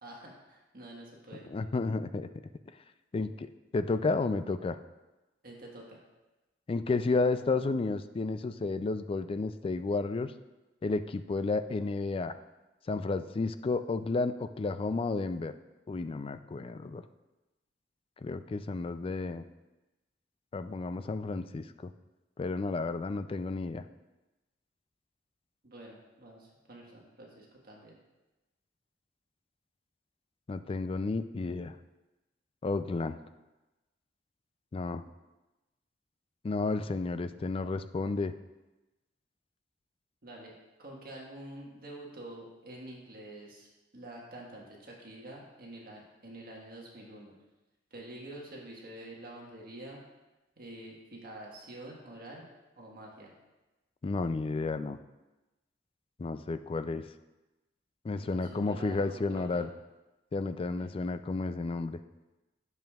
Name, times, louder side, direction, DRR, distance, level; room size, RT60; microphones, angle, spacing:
voice 1, 0.0-1.5 5.4-6.0 25.6-28.0 40.2-40.5 40.8-43.7 43.9-47.3 47.9-50.0 50.6-52.5 52.8-53.3 58.2-59.7 60.8-61.0, right 1 dB, 55° right, -2 dB, 1.4 m, -47 dB
voice 2, 1.5-2.3 3.1-4.8 6.7-10.3 10.8-12.3 12.9-15.5 15.9-17.0 18.2-19.4 20.5-21.9 22.4-23.8 30.5-31.8 32.6-33.2 34.7-35.0 36.4-38.3 54.0-55.0 56.2-57.1 58.0-59.7 60.3-62.0, left 3 dB, 30° left, 10 dB, 0.3 m, -32 dB
10.5 x 7.0 x 2.4 m, 1.1 s
head